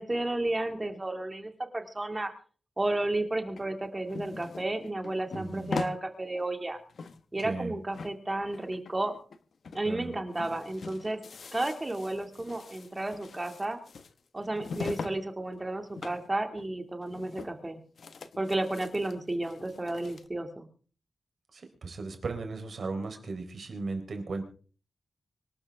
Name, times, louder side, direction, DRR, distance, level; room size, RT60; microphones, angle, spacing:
voice 1, 0.0-2.3 2.8-6.8 7.3-9.2 9.7-11.2 11.5-13.8 14.3-17.8 18.4-20.7, right 2 dB, 20° right, 5 dB, 2.3 m, -32 dB
sound 1, 3.6-6.0 6.4-6.5 6.8-7.7 7.9-9.4 9.6-9.8 10.1-15.2 15.5-16.3 16.6-16.7 17.0-17.7 18.0-20.3, left 4 dB, 65° left, 1.1 m, -42 dB
voice 2, 5.3-5.7 7.4-7.7 9.8-10.1 21.5-24.4, right 3 dB, 60° right, 5 dB, 4.0 m, -36 dB
25.5 x 12.5 x 3.6 m, 0.40 s
wide cardioid pair, 170°, 0 cm